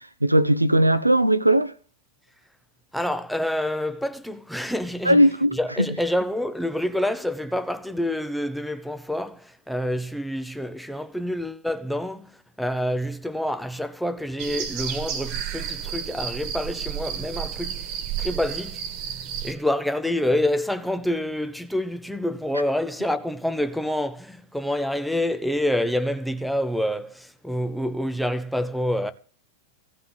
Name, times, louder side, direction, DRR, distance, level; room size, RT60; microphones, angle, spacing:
voice 1, 0.2-1.7 5.0-5.6, right 1 dB, 85° right, 1.0 m, -18 dB
voice 2, 2.9-18.8 19.4-29.1, left 1 dB, ahead, 1.3 m, -27 dB
sound 1, 14.4-19.5, right 9 dB, 40° right, 1.9 m, -32 dB
16.5 x 5.5 x 9.9 m
figure-of-eight pair, 90°, 0 cm